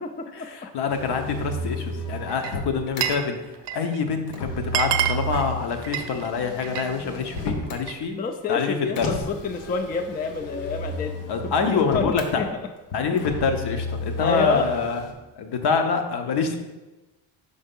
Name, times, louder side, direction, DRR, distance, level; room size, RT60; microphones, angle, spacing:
voice 1, 0.3-3.4 3.7-8.2 8.5-9.1 11.3-12.4 12.9-15.0 15.4-16.6, left 5 dB, 60° left, 5 dB, 0.9 m, -26 dB
Motor vehicle (road), 0.9-3.1 4.3-7.9 9.0-12.3 13.2-15.1, left 1 dB, 85° left, 1.0 m, -33 dB
Glass, 2.3-3.3 3.5-4.0 4.3-4.4 4.6-6.9 7.3-8.0, right 11 dB, 65° right, 0.6 m, -28 dB
voice 2, 8.2-11.1 11.4-12.5 13.1-13.3 14.2-14.6, left 4 dB, 20° left, 5 dB, 0.4 m, -27 dB
5.5 x 3.4 x 5.3 m, 1.1 s
cardioid pair, 100°, 46 cm